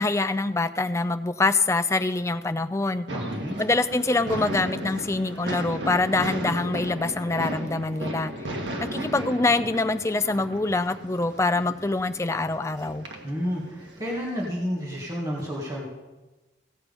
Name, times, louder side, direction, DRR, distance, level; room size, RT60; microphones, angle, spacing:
voice 1, 0.0-3.1 3.6-8.3 8.8-13.1, left 3 dB, 15° left, 10 dB, 0.4 m, -25 dB
voice 2, 3.1-3.6 13.2-15.9, equal, 20° right, -5 dB, 1.9 m, -30 dB
sound 1, 3.1-14.5, right 1 dB, 80° right, 1.6 m, -35 dB
16.0 x 7.5 x 5.2 m, 1.1 s
head